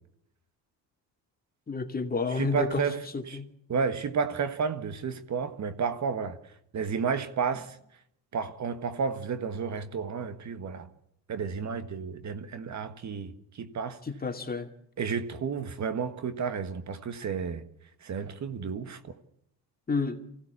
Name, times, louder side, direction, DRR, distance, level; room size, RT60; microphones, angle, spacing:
voice 1, 1.7-2.8 3.1-3.5 14.1-14.7 19.9-20.2, left 4 dB, 25° left, 2.3 m, -30 dB
voice 2, 2.3-3.4 3.7-6.4 6.7-7.8 8.3-10.9 11.3-14.0 15.0-17.6 18.0-19.1, right 6 dB, 45° right, 1.6 m, -32 dB
24.0 x 16.5 x 8.4 m
cardioid pair, 100°, 39 cm